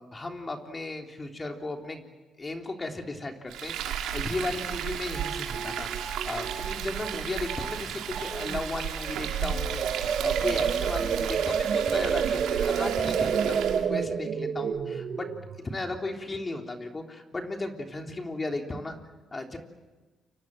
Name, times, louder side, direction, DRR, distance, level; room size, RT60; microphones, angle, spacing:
voice 1, 0.0-2.1 2.4-15.3 15.6-19.0 19.3-19.6, left 2 dB, 25° left, 3 dB, 3.6 m, -35 dB
Frying (food), 3.5-13.9, right 9 dB, 85° right, 3.2 m, -34 dB
sound 1, 4.7-7.2 7.5-7.8 8.1-8.6 9.1-16.0, right 7 dB, 55° right, 2.1 m, -30 dB
29.5 x 25.0 x 7.7 m, 1.3 s
cardioid pair, 90°, 0 cm